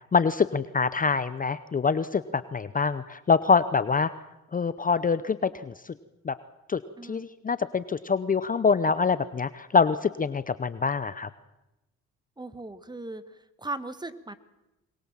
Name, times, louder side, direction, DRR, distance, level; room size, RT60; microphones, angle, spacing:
voice 1, 0.1-4.1 4.5-5.9 6.2-6.3 6.7-11.3, left 5 dB, 30° left, 14 dB, 0.7 m, -25 dB
voice 2, 7.0-7.3 12.4-13.2 13.6-14.3, right 2 dB, 15° right, 12 dB, 1.5 m, -37 dB
23.0 x 21.5 x 7.4 m, 0.97 s
cardioid pair, 90°, 30 cm